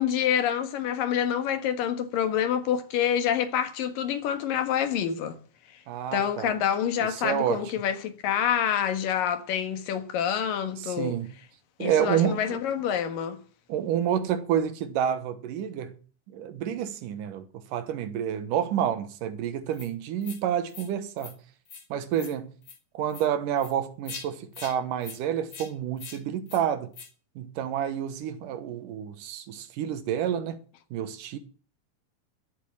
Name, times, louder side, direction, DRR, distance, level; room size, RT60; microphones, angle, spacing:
voice 1, 0.0-5.4 6.1-11.2 11.8-13.4, left 9 dB, 80° left, 3.3 m, -27 dB
voice 2, 5.9-6.5 7.0-7.6 10.8-11.3 11.8-12.6 13.7-16.0 16.3-21.4 21.9-22.6 22.9-26.9 27.4-30.6 30.9-31.4, right 9 dB, 75° right, 2.7 m, -29 dB
sound 1, 19.7-19.9 20.2-20.4 20.7-20.9 21.2-21.3 21.7-21.9 22.1-22.3 22.6-22.8 23.1-23.3 23.6-23.7 24.1-24.3 24.5-24.7 25.0-25.2 25.5-25.7 26.0-26.2 26.5-26.6 26.9-27.1, left 6 dB, 40° left, 2.4 m, -42 dB
12.5 x 8.1 x 8.8 m
omnidirectional pair, 3.9 m